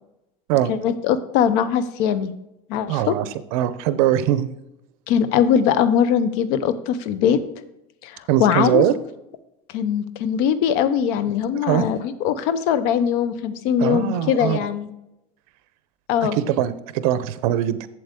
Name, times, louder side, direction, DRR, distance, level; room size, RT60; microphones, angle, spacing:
voice 1, 0.7-2.3 2.7-3.1 5.1-7.4 8.0-8.8 9.7-14.9 16.1-16.4, left 8 dB, 65° left, 13 dB, 0.8 m, -21 dB
voice 2, 2.9-3.2 3.5-4.5 8.3-8.9 11.7-11.9 13.8-14.6 16.2-17.9, right 11 dB, 75° right, 13 dB, 0.7 m, -21 dB
7.8 x 7.7 x 3.6 m, 0.87 s
cardioid pair, 150°, 19 cm